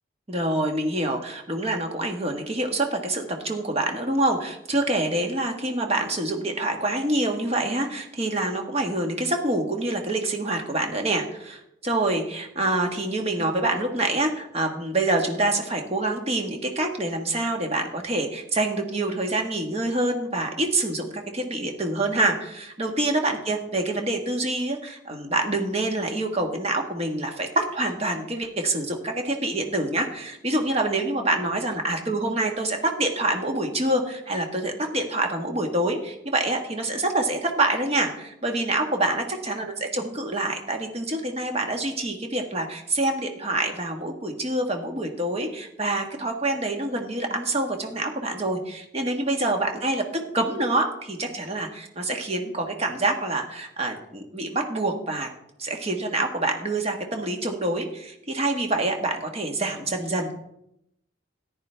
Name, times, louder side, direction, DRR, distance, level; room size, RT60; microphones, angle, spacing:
voice 1, 0.3-55.3 55.6-60.3, right 2 dB, 30° right, 3 dB, 1.3 m, -26 dB
14.0 x 10.0 x 3.4 m, 0.80 s
head